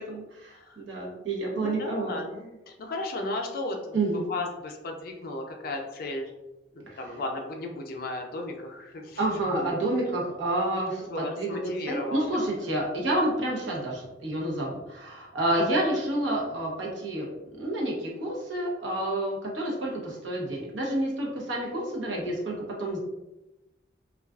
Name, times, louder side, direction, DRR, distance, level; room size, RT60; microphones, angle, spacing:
voice 1, 0.1-2.1 3.9-4.2 6.9-7.0 9.2-17.3 17.6-23.0, right 1 dB, 85° right, -3 dB, 0.8 m, -29 dB
voice 2, 1.5-6.3 6.7-9.8 11.0-12.3 15.4-15.5, left 2 dB, 50° left, 2 dB, 0.4 m, -35 dB
2.3 x 2.3 x 2.3 m, 0.98 s
head